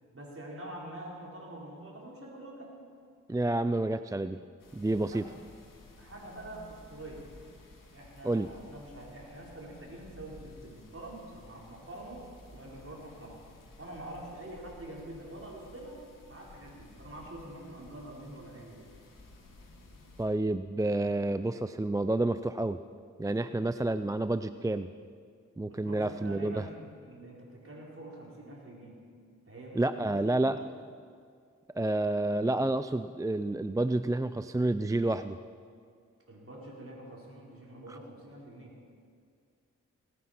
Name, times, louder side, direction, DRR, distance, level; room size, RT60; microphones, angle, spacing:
voice 1, 0.1-2.7 5.0-5.2 6.0-7.2 7.9-12.3 12.5-13.4 13.8-16.0 16.3-18.9 25.7-29.0 29.5-30.7 36.3-38.7, right 1 dB, 45° right, -3 dB, 5.0 m, -45 dB
voice 2, 3.3-4.4 4.7-5.2 8.2-8.5 20.2-22.8 23.2-24.9 25.6-26.7 29.7-30.6 31.8-35.4 37.9-38.0, right 2 dB, 10° right, 11 dB, 0.4 m, -29 dB
sound 1, 4.6-20.3, left 2 dB, 80° left, 2.4 m, -54 dB
19.0 x 9.6 x 6.0 m, 2.2 s
cardioid pair, 40°, 32 cm